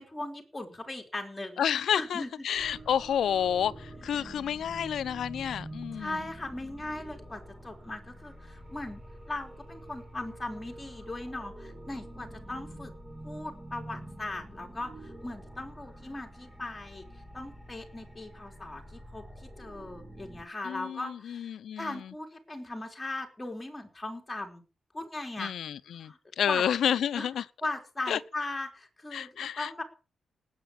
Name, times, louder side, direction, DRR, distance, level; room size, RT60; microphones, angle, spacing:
voice 1, 0.0-1.6 1.9-2.3 5.9-12.9 13.2-17.1 17.3-24.6 24.9-25.5 25.9-26.2 26.5-26.6 27.2-27.3 27.6-29.8, left 2 dB, 15° left, 3.7 m, -38 dB
voice 2, 1.6-6.2 20.6-22.1 25.4-27.4 28.1-28.2 29.1-29.7, left 9 dB, 75° left, 0.8 m, -30 dB
sound 1, 2.5-20.5, right 1 dB, 15° right, 4.1 m, -46 dB
18.5 x 8.4 x 7.2 m
wide cardioid pair, 145°, 0 cm